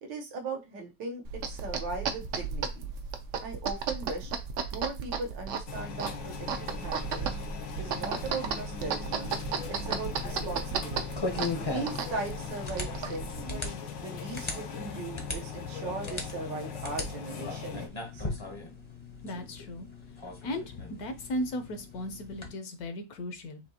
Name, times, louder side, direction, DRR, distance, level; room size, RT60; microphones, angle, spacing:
voice 1, 0.0-2.9 3.4-4.3 4.7-7.3 7.8-9.3 9.7-11.2 11.6-13.7 14.0-17.9 18.1-18.2, right 3 dB, 85° right, 3 dB, 1.6 m, -39 dB
Eye goo, 1.2-13.4, right 6 dB, 65° right, 0.7 m, -35 dB
sound 1, 5.7-17.9, left 6 dB, 80° left, 1.5 m, -40 dB
Pen clicking, 9.8-22.5, left 3 dB, 30° left, 0.5 m, -39 dB
voice 2, 19.2-19.9 20.4-23.6, left 1 dB, 65° left, 8 dB, 1.1 m, -36 dB
6.6 x 2.7 x 2.8 m, 0.25 s
omnidirectional pair, 1.9 m